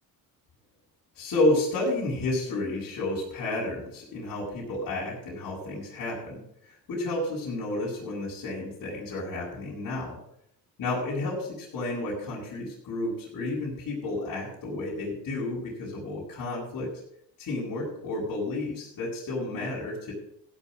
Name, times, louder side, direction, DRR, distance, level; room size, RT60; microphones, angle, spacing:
voice 1, 1.2-6.4 6.9-10.2 10.8-16.9 17.4-20.1, left 2 dB, 60° left, -8 dB, 7.5 m, -31 dB
16.0 x 7.6 x 6.4 m, 0.71 s
cardioid pair, 110°, 38 cm